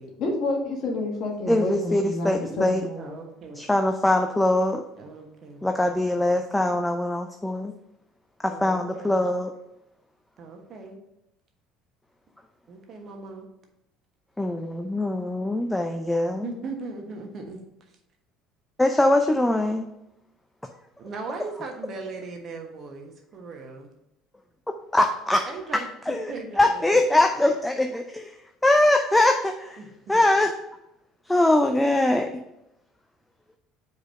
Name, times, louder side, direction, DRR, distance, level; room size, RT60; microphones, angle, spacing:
voice 1, 0.2-3.2, left 2 dB, 55° left, 0 dB, 1.5 m, -29 dB
voice 2, 1.5-2.8 3.6-4.8 5.6-7.7 8.4-9.5 14.4-16.5 18.8-19.9 24.9-25.5 25.7-28.3 28.6-29.8 30.1-30.5 31.3-32.3, left 1 dB, 10° left, 5 dB, 0.5 m, -22 dB
voice 3, 3.0-3.7 5.0-5.7 8.5-9.2 10.4-11.0 12.7-13.5 16.4-17.6 21.0-23.9 25.5-27.0 29.8-30.3, right 4 dB, 45° right, 2 dB, 1.3 m, -38 dB
5.0 x 4.1 x 5.3 m, 0.87 s
hypercardioid pair, 65°, 0 cm